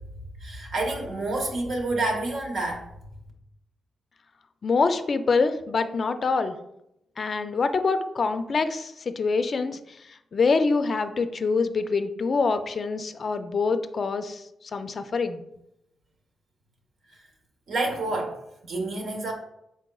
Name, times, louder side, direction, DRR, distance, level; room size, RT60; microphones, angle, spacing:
voice 1, 0.4-2.8 17.7-19.3, right 2 dB, 75° right, 1 dB, 1.0 m, -28 dB
voice 2, 4.6-6.6 7.2-9.8 10.3-14.4 14.7-15.4, left 4 dB, 50° left, 9 dB, 0.3 m, -25 dB
4.8 x 4.1 x 2.3 m, 0.82 s
cardioid pair, 100°, 0 cm